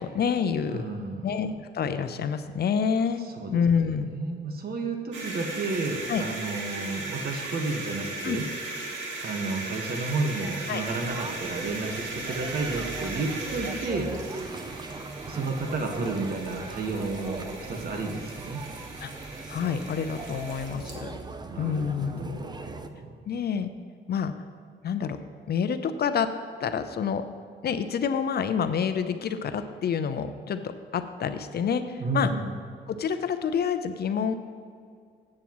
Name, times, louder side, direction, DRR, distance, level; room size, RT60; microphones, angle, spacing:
voice 1, 0.0-0.9 1.2-3.2 3.5-4.1 6.1-6.2 8.2-8.4 10.7-10.8 19.0-19.1 19.5-21.2 21.6-22.4 23.3-23.7 24.1-24.3 24.8-25.2 25.5-26.3 26.6-27.2 27.6-30.6 30.9-32.3 32.9-34.3, left 7 dB, 55° left, 10 dB, 0.7 m, -27 dB
voice 2, 0.7-1.3 3.4-8.4 9.2-14.1 15.2-18.6 21.4-23.2 32.0-32.5, right 3 dB, 50° right, 3 dB, 1.5 m, -32 dB
sound 1, 5.1-21.0, right 2 dB, 75° right, 2.0 m, -38 dB
sound 2, 10.9-22.9, right 3 dB, 20° right, 0.7 m, -39 dB
14.5 x 8.6 x 3.1 m, 2.3 s
cardioid pair, 90°, 20 cm